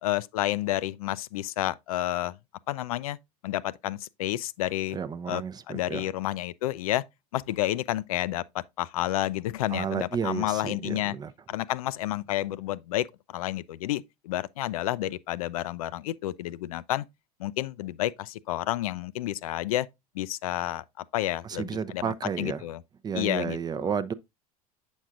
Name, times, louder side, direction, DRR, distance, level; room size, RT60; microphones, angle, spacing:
voice 1, 0.0-2.4 2.7-3.2 3.4-5.0 5.3-7.0 7.3-11.1 11.5-13.1 13.3-17.0 17.4-19.9 20.2-22.8 23.1-23.9, left 14 dB, 70° left, 0.4 m, -30 dB
voice 2, 4.9-6.1 9.7-11.3 21.4-22.6 23.0-24.1, right 6 dB, 20° right, 0.5 m, -32 dB
8.0 x 6.2 x 2.4 m
hypercardioid pair, 85°, 19 cm